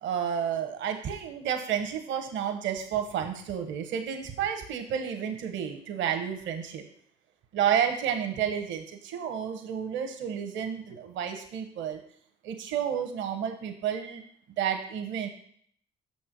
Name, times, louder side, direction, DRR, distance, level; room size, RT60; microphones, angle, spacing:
voice 1, 0.0-6.9 7.5-12.0 12.4-14.2 14.6-15.3, right 8 dB, 65° right, 5 dB, 1.0 m, -31 dB
6.2 x 4.4 x 6.0 m, 0.64 s
hypercardioid pair, 55°, 21 cm